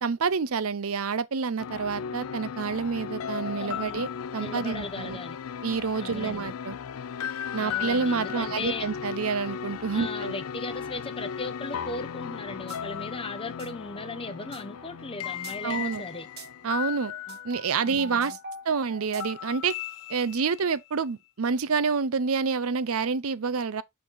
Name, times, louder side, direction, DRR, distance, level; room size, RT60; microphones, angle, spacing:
voice 1, 0.0-5.2 5.6-6.8 7.5-10.4 15.6-16.0 16.6-17.1 17.4-18.4 18.7-19.7 20.1-23.8, right 5 dB, 70° right, 0.6 m, -28 dB
sound 1, 1.6-18.2 19.2-20.9, left 8 dB, 70° left, 0.4 m, -36 dB
voice 2, 3.6-4.0 4.4-5.4 6.0-6.5 7.6-8.9 9.9-16.3 17.3-17.4 17.8-18.4, left 2 dB, 25° left, 0.9 m, -37 dB
sound 2, 12.7-12.8 13.1-19.6, right 1 dB, 45° right, 1.2 m, -44 dB
8.7 x 4.1 x 3.9 m
head